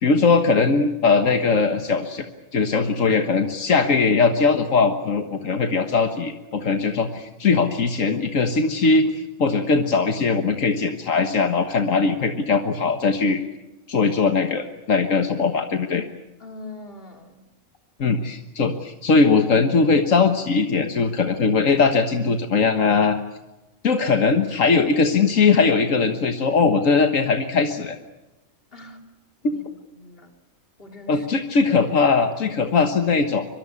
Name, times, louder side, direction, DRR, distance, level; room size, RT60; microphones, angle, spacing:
voice 1, 0.0-2.2 2.5-13.4 13.9-16.1 18.0-23.2 23.8-28.0 29.4-29.5 31.1-33.5, left 4 dB, 80° left, 7 dB, 1.8 m, -20 dB
voice 2, 16.4-17.4 28.7-29.0 29.5-29.6 29.9-30.3 30.8-31.3, left 2 dB, 45° left, 4 dB, 3.5 m, -41 dB
24.0 x 23.5 x 8.7 m, 0.99 s
omnidirectional pair, 1.3 m